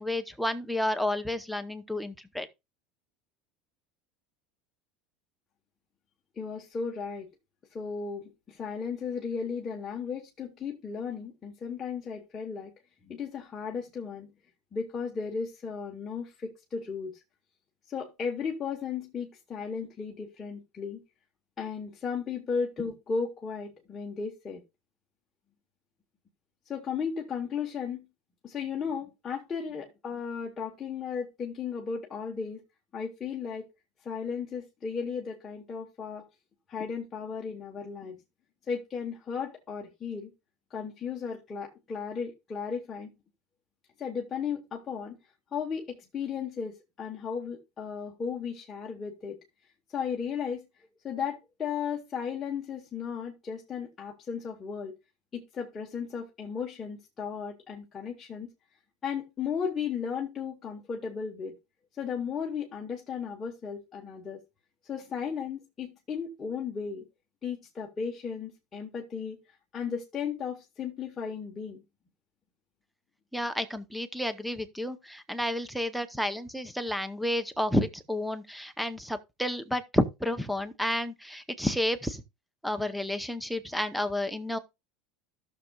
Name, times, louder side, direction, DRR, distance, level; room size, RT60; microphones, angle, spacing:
voice 1, 0.0-2.5 73.3-82.2 82.6-84.6, left 1 dB, ahead, 0.7 m, -31 dB
voice 2, 6.4-7.3 7.7-12.7 13.0-14.3 14.7-17.2 17.9-21.0 21.6-24.6 26.7-28.0 28.4-32.6 32.9-33.7 34.0-36.3 36.7-38.2 38.7-40.3 40.7-43.1 44.0-45.2 45.5-49.4 49.9-50.6 51.0-54.9 55.3-58.5 59.0-61.5 62.0-64.4 64.8-67.0 67.4-69.4 69.7-71.8, left 6 dB, 20° left, 1.1 m, -35 dB
15.0 x 6.5 x 2.3 m
cardioid pair, 160°, 0 cm